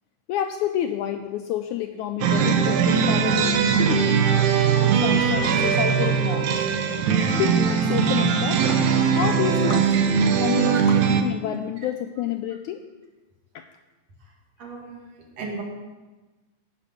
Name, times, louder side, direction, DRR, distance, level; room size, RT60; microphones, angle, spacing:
voice 1, 0.3-4.3 4.8-6.6 7.4-8.6 9.2-9.9 10.4-12.8 13.6-13.7, left 11 dB, 85° left, 7 dB, 1.7 m, -29 dB
sound 1, 2.2-11.2, right 6 dB, 70° right, 2.1 m, -20 dB
voice 2, 14.6-15.0 15.4-15.6, right 4 dB, 50° right, -1 dB, 3.4 m, -34 dB
17.0 x 6.7 x 6.3 m, 1.2 s
omnidirectional pair, 4.0 m